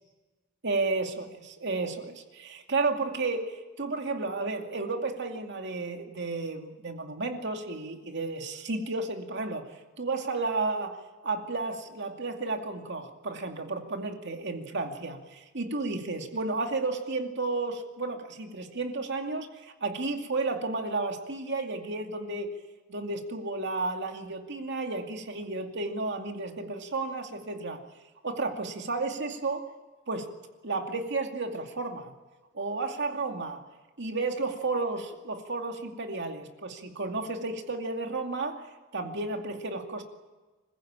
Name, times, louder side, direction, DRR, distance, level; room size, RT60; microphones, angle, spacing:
voice 1, 0.6-22.5 22.9-27.8 28.2-29.7 30.1-30.3 30.6-32.1 32.5-33.6 34.0-38.6 38.9-40.0, right 3 dB, 60° right, 4 dB, 2.4 m, -32 dB
26.0 x 16.0 x 8.9 m, 1.2 s
head